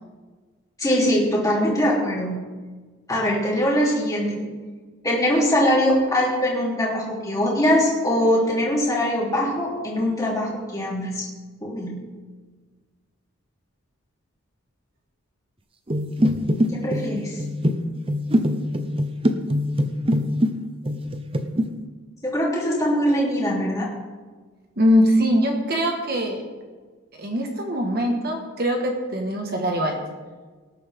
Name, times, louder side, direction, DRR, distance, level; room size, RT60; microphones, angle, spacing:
voice 1, 0.8-2.4 3.1-4.4 5.0-11.3 11.6-11.9 16.7-17.4 22.2-23.9, equal, 15° left, -4 dB, 3.2 m, -22 dB
sound 1, 15.9-20.6 20.9-21.7, equal, 25° right, 0.7 m, -23 dB
voice 2, 24.8-26.4 27.2-30.0, equal, 45° right, 2 dB, 1.5 m, -22 dB
19.0 x 9.9 x 3.6 m, 1.4 s
head